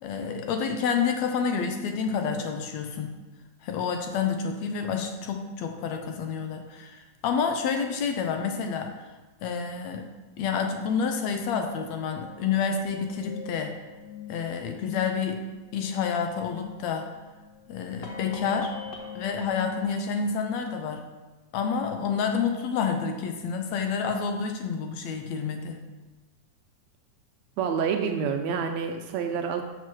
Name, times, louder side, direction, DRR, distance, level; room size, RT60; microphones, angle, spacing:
voice 1, 0.0-3.1 3.6-8.9 9.4-10.1 10.4-13.8 14.3-15.4 15.7-17.1 17.7-18.7 19.2-21.0 21.5-25.8, left 6 dB, 75° left, 5 dB, 1.9 m, -29 dB
sound 1, 11.2-19.8, left 7 dB, 55° left, 1.1 m, -42 dB
voice 2, 27.6-29.6, right 6 dB, 75° right, 5 dB, 1.7 m, -28 dB
6.6 x 6.5 x 6.1 m, 1.2 s
omnidirectional pair, 3.5 m